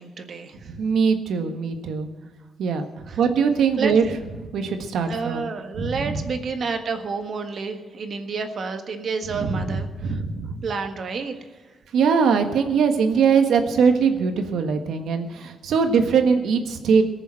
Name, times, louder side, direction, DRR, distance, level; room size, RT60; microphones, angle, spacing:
voice 1, 0.0-0.7 3.1-3.2 3.8-3.9 5.1-10.2 10.6-11.3, right 5 dB, 55° right, 6 dB, 1.5 m, -30 dB
voice 2, 0.7-2.1 2.6-2.9 3.2-4.1 4.4-5.5 5.8-6.2 9.3-10.6 11.9-17.0, right 6 dB, 80° right, 6 dB, 1.5 m, -21 dB
18.5 x 7.0 x 7.7 m, 1.3 s
cardioid pair, 100°, 0 cm